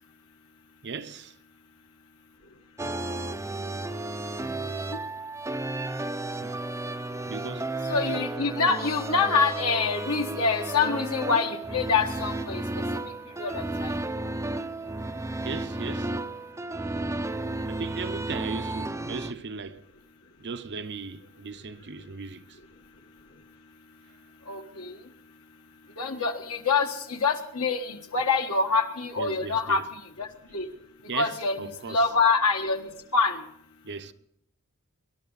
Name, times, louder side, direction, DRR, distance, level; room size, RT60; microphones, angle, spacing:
voice 1, 0.8-1.4 6.4-6.6 7.3-7.7 15.4-16.2 17.7-19.8 20.4-22.6 28.2-28.3 29.2-29.9 31.1-32.1 33.8-34.1, right 4 dB, 50° right, 0.8 m, -37 dB
sound 1, 2.8-19.3, right 2 dB, 15° right, 0.6 m, -33 dB
voice 2, 7.9-12.6 13.0-13.9 24.5-25.0 26.0-30.7 31.1-33.5, left 4 dB, 70° left, 1.5 m, -26 dB
24.5 x 11.5 x 4.1 m
head